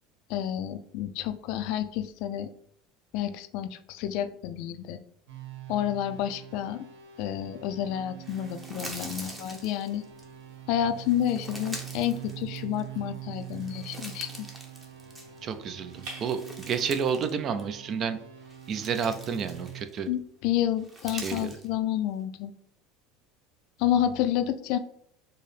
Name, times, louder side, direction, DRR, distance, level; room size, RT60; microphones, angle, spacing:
voice 1, 0.3-2.5 3.1-5.0 5.7-6.9 7.2-10.0 10.7-14.3 20.1-22.5 23.8-24.8, left 11 dB, 65° left, 10 dB, 0.3 m, -29 dB
sound 1, 5.3-19.8, right 12 dB, 85° right, 0.7 m, -44 dB
sound 2, 8.2-10.2 11.0-13.0 13.4-15.5 15.9-17.3 17.6-17.8 18.4-20.1 20.8-21.7, right 1 dB, 15° right, 0.8 m, -44 dB
sound 3, 10.1-17.8, right 2 dB, 65° right, 1.1 m, -52 dB
voice 2, 15.4-18.2 18.7-20.1 21.1-21.6, right 6 dB, 40° right, 10 dB, 0.4 m, -30 dB
4.5 x 2.0 x 3.2 m, 0.69 s
supercardioid pair, 115°, 0 cm